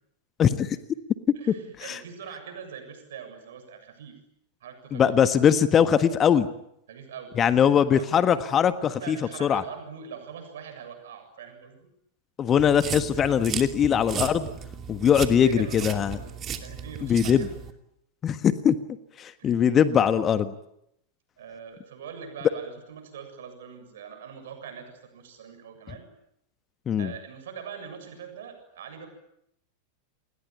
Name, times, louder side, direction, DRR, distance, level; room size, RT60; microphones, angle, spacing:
voice 1, 0.4-0.8 1.5-1.6 1.8-2.0 4.9-6.5 7.4-9.6 12.4-14.5 14.9-16.2 17.1-17.5 18.2-18.7 19.2-20.5 26.9-27.1, left 8 dB, 25° left, 12 dB, 1.4 m, -21 dB
voice 2, 1.3-4.2 4.6-5.2 6.9-8.0 8.8-11.9 15.4-17.5 19.4-19.7 21.4-26.1 27.0-29.1, right 7 dB, 60° right, 7 dB, 7.4 m, -43 dB
sound 1, 12.6-17.7, right 8 dB, 30° right, 2.7 m, -35 dB
29.5 x 21.5 x 8.8 m, 0.80 s
figure-of-eight pair, 90°, 0 cm